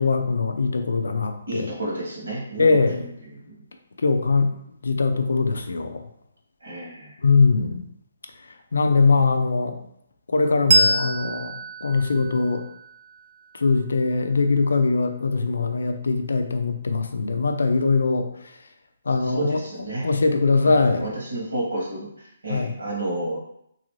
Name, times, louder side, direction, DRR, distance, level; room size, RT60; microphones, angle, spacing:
voice 1, 0.0-1.7 2.6-3.1 4.0-4.6 4.8-6.0 7.2-7.8 8.7-9.8 10.3-12.6 13.5-18.3 19.1-19.6 20.0-21.1 22.5-22.7, left 4 dB, 85° left, 7 dB, 0.4 m, -21 dB
voice 2, 1.5-3.6 6.6-7.1 19.2-20.1 20.6-23.4, right 1 dB, 90° right, -3 dB, 1.5 m, -31 dB
Bell, 10.7-13.8, right 1 dB, 50° right, 0.4 m, -25 dB
3.1 x 2.6 x 3.1 m, 0.74 s
hypercardioid pair, 165°, 0 cm